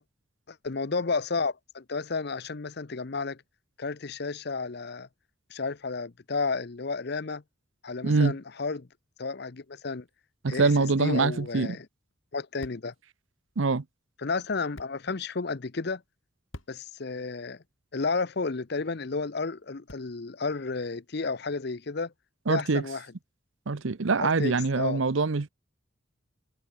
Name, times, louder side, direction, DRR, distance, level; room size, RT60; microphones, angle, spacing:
voice 1, 0.5-3.4 3.8-5.1 5.5-7.4 7.8-8.9 9.2-10.1 10.5-11.9 12.3-12.9 14.2-16.0 16.7-17.6 17.9-22.1 22.5-23.1 24.2-25.0, left 4 dB, 50° left, 0.7 m, -32 dB
voice 2, 8.0-8.3 10.4-11.8 13.6-13.8 22.5-22.8 23.7-25.5, right 4 dB, 70° right, 0.7 m, -24 dB
sound 1, 11.4-20.4, left 1 dB, 70° left, 3.9 m, -54 dB
head